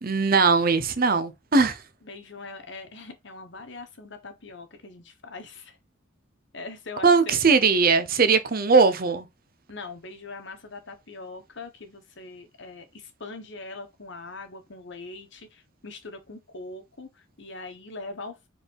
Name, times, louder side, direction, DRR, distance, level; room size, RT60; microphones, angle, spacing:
voice 1, 0.0-1.8 7.0-9.3, right 4 dB, 45° right, 0.8 m, -20 dB
voice 2, 2.0-5.8 6.5-7.4 9.7-18.5, left 3 dB, 60° left, 1.3 m, -41 dB
4.8 x 3.7 x 5.3 m
head